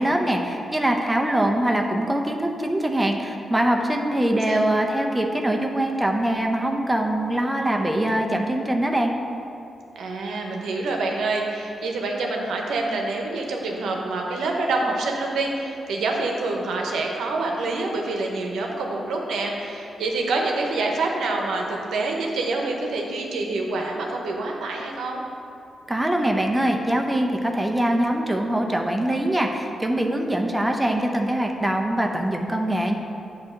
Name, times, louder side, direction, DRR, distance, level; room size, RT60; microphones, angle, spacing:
voice 1, 0.0-9.1 25.9-32.9, right 1 dB, 10° right, 2 dB, 0.6 m, -23 dB
voice 2, 4.2-4.6 10.0-25.2, right 3 dB, 90° right, 1 dB, 0.8 m, -26 dB
8.6 x 2.9 x 6.2 m, 2.6 s
cardioid pair, 75°, 0 cm